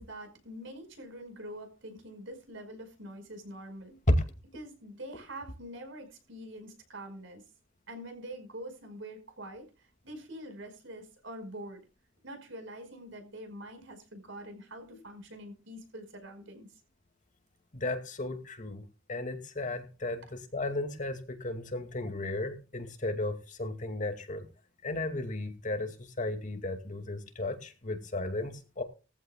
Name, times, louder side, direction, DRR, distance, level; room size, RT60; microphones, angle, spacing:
voice 1, 0.0-4.0 4.5-7.4 7.9-9.7 10.0-11.8 12.2-16.7, right 1 dB, 65° right, 5.2 m, -45 dB
voice 2, 17.7-18.8 19.1-24.4 24.8-28.8, left 2 dB, 40° left, 2.3 m, -35 dB
20.5 x 14.5 x 2.3 m
head